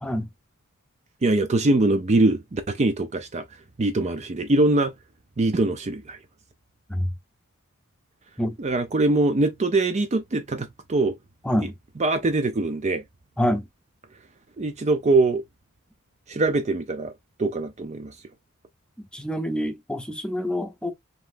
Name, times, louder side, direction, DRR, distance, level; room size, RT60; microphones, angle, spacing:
voice 1, 1.2-3.4 3.8-4.9 5.4-6.2 8.6-11.1 12.0-13.0 14.6-15.4 16.3-17.1 17.4-18.1, right 2 dB, 30° right, 0.5 m, -22 dB
voice 2, 13.4-13.7 19.0-20.9, equal, 5° left, 0.7 m, -26 dB
5.4 x 3.0 x 2.5 m
head